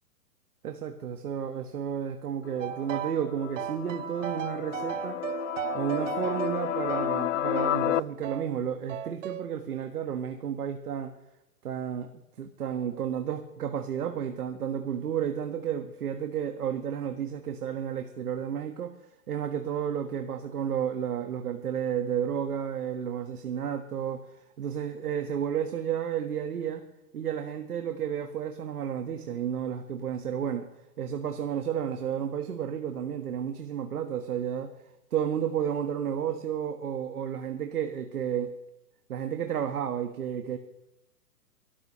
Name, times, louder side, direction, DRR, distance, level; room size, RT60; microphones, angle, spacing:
voice 1, 0.6-5.2 5.7-11.1 11.6-19.0 19.3-26.8 27.1-30.7 31.0-34.7 35.1-38.5 39.1-40.6, right 8 dB, 65° right, 6 dB, 1.7 m, -32 dB
sound 1, 2.5-8.0, left 12 dB, 55° left, 0.5 m, -32 dB
sound 2, 2.6-3.3 3.6-7.8 8.2-8.5 8.9-9.5, right 12 dB, 50° right, 0.9 m, -36 dB
23.0 x 13.5 x 3.2 m, 0.89 s
hypercardioid pair, 130°, 48 cm